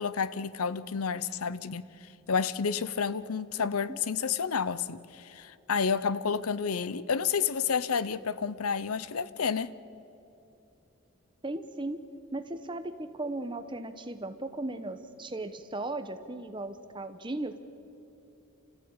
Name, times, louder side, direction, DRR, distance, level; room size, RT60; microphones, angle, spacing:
voice 1, 0.0-1.9 2.3-9.7, left 6 dB, 90° left, 0.7 m, -30 dB
voice 2, 11.4-12.0 12.3-17.6, right 2 dB, 20° right, 1.0 m, -36 dB
29.5 x 14.5 x 8.8 m
head